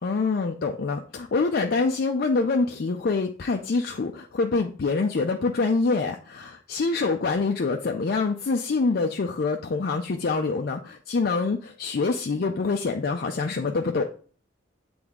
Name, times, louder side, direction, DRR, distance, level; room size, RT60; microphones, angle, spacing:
voice 1, 0.0-14.1, left 4 dB, 55° left, 3 dB, 0.4 m, -25 dB
8.1 x 3.4 x 3.6 m, 0.42 s
head